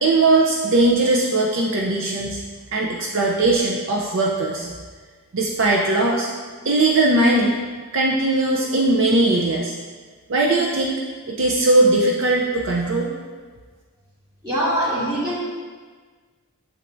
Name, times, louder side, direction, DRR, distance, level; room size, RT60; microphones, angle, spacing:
voice 1, 0.0-2.4 2.7-4.7 5.3-6.3 6.6-7.6 7.9-9.7 10.3-13.1, right 2 dB, 60° right, -1 dB, 0.6 m, -19 dB
voice 2, 14.4-15.4, equal, 20° right, -8 dB, 2.1 m, -22 dB
8.7 x 7.3 x 2.6 m, 1.5 s
head